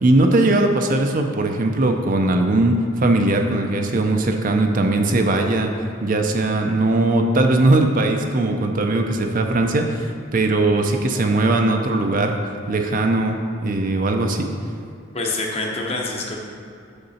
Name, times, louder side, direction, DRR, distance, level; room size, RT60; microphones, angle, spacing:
voice 1, 0.0-5.7 6.0-12.4 12.7-14.5, right 2 dB, 45° right, 4 dB, 0.5 m, -19 dB
voice 2, 15.1-16.4, left 2 dB, 30° left, 0 dB, 0.9 m, -26 dB
6.7 x 6.5 x 4.2 m, 2.5 s
head